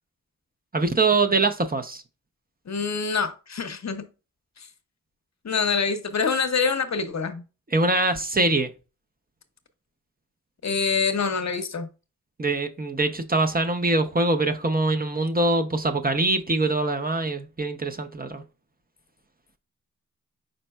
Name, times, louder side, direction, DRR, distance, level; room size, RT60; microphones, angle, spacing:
voice 1, 0.7-2.0 7.7-8.7 12.4-18.4, right 2 dB, 25° right, 0.6 m, -23 dB
voice 2, 2.7-4.1 4.6-4.7 5.4-7.4 10.6-11.9, left 5 dB, 50° left, 0.6 m, -25 dB
5.2 x 4.3 x 2.2 m
cardioid pair, 40°, 35 cm